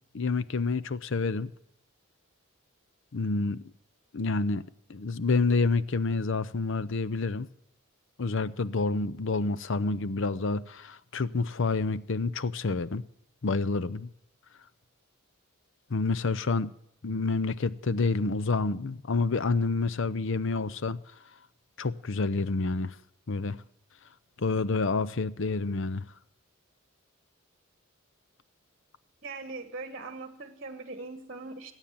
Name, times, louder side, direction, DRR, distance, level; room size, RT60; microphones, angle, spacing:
voice 1, 0.1-1.5 3.1-3.6 4.1-4.6 4.9-7.5 8.2-13.0 13.4-14.1 15.9-16.7 17.0-21.0 21.8-23.0 23.3-23.6 24.4-26.0, left 3 dB, 60° left, 0.6 m, -28 dB
voice 2, 29.2-31.7, right 3 dB, 40° right, 1.3 m, -40 dB
20.5 x 9.0 x 7.3 m
head